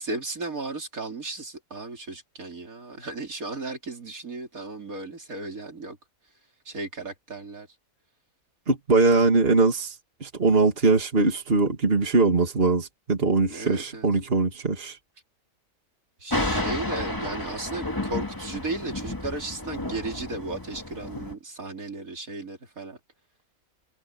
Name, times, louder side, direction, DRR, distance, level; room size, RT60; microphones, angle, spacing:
voice 1, 0.0-6.0 6.7-7.7 13.5-14.1 16.2-23.0, right 2 dB, 75° right, 4.1 m, -35 dB
voice 2, 8.7-9.9 10.2-15.0, right 3 dB, 40° right, 2.6 m, -21 dB
Thunder, 16.3-21.3, left 1 dB, 15° left, 1.8 m, -31 dB
omnidirectional pair, 1.5 m